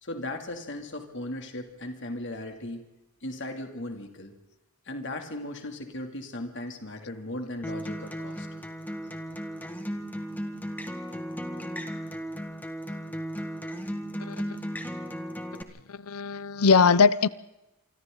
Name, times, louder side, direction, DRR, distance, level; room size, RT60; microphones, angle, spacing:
voice 1, 0.0-2.8 3.2-4.3 4.9-8.5 10.5-10.6, left 1 dB, 55° left, 2.8 m, -37 dB
Acoustic guitar, 7.6-15.6, equal, 10° left, 1.8 m, -35 dB
voice 2, 14.2-14.6 15.9-17.3, left 5 dB, 80° left, 0.7 m, -21 dB
27.5 x 25.0 x 4.0 m
head